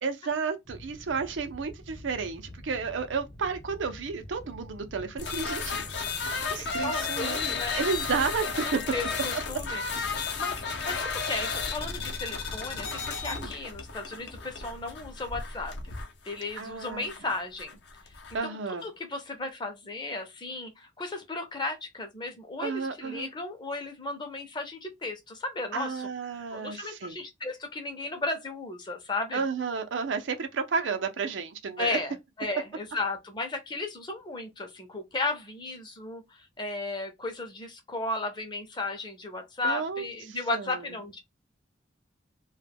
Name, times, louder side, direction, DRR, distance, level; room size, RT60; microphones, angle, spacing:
voice 1, 0.0-6.1 6.5-8.8 13.3-13.5 16.6-17.0 18.3-18.9 22.6-23.3 25.7-27.2 29.3-32.0 39.6-40.8, right 5 dB, 90° right, 0.5 m, -32 dB
sound 1, 0.6-13.4, left 1 dB, 50° left, 0.9 m, -47 dB
sound 2, 5.2-18.4, left 5 dB, 65° left, 0.6 m, -33 dB
voice 2, 6.5-7.8 8.6-10.0 10.4-15.7 16.3-17.8 18.4-26.1 26.5-29.4 31.8-41.2, left 2 dB, 25° left, 0.5 m, -35 dB
2.2 x 2.1 x 3.3 m
head